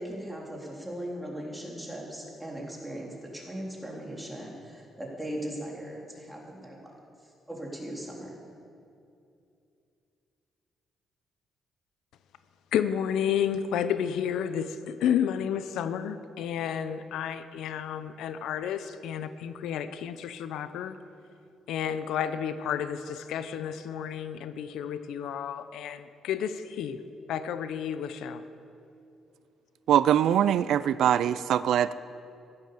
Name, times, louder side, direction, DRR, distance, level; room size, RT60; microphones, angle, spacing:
voice 1, 0.0-6.8 7.5-8.4, right 1 dB, 5° right, -3 dB, 3.6 m, -38 dB
voice 2, 12.7-21.0 21.7-27.0 27.3-28.4, left 8 dB, 85° left, 12 dB, 0.6 m, -31 dB
voice 3, 29.9-31.9, right 10 dB, 75° right, 16 dB, 0.3 m, -23 dB
14.5 x 11.0 x 6.9 m, 2.6 s
cardioid pair, 90°, 0 cm